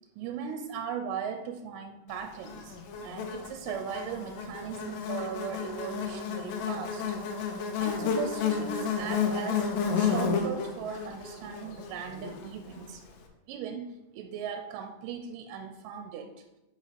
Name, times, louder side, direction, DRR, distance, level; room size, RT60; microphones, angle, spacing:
voice 1, 0.2-7.0 7.6-9.7 10.0-13.0 13.5-16.4, right 7 dB, 80° right, 6 dB, 2.1 m, -38 dB
Buzz, 2.4-12.9, left 6 dB, 75° left, 2.3 m, -32 dB
5.4 x 5.2 x 4.9 m, 0.92 s
omnidirectional pair, 4.0 m